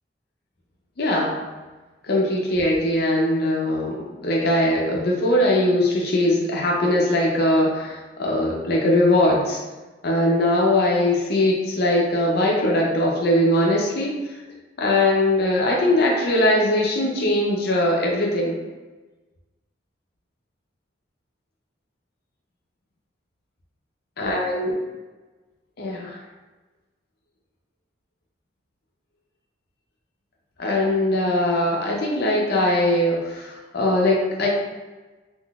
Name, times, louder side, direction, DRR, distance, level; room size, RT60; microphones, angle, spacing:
voice 1, 1.0-1.5 2.1-9.6 10.0-14.1 14.8-18.6 24.2-24.7 25.8-26.2 30.6-34.5, left 1 dB, 60° left, -2 dB, 0.6 m, -21 dB
3.7 x 2.5 x 2.3 m, 1.2 s
head